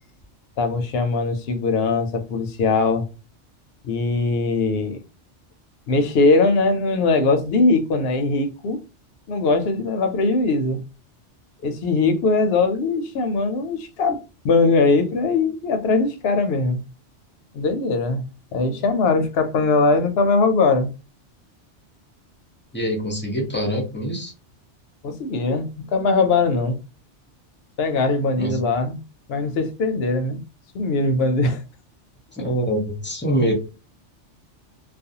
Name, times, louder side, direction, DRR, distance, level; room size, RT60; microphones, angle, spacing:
voice 1, 0.6-3.1 3.8-5.0 5.9-8.8 9.3-10.8 11.6-14.2 14.4-16.8 17.5-18.2 18.5-20.9 25.0-26.8 27.8-29.0 29.3-30.4 30.7-31.6, left 3 dB, 65° left, 0.7 m, -20 dB
voice 2, 22.7-24.3 28.4-28.6 32.3-33.5, equal, 10° left, 0.6 m, -24 dB
2.4 x 2.2 x 2.7 m
omnidirectional pair, 1.2 m